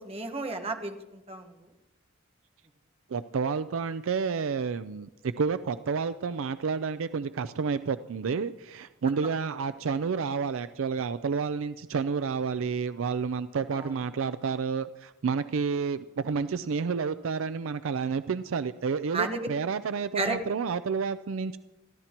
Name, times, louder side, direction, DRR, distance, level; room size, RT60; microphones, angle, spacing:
voice 1, 0.0-1.5 9.4-9.5 13.7-14.0 19.1-19.4 20.1-20.4, right 3 dB, 30° right, 4 dB, 1.3 m, -32 dB
voice 2, 3.1-5.1 5.4-21.6, right 5 dB, 65° right, 13 dB, 0.4 m, -30 dB
26.5 x 14.0 x 3.0 m, 1.0 s
head